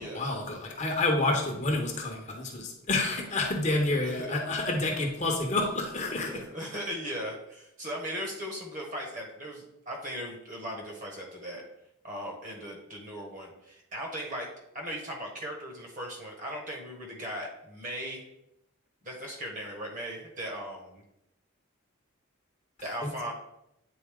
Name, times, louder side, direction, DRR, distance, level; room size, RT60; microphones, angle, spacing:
voice 1, 0.0-6.3 23.0-23.1, left 2 dB, 30° left, 1 dB, 0.8 m, -29 dB
voice 2, 4.0-4.3 6.2-11.7 12.0-14.5 14.7-18.3 19.0-21.0 22.8-23.3, equal, 35° right, -1 dB, 1.4 m, -38 dB
8.5 x 4.0 x 3.6 m, 0.83 s
head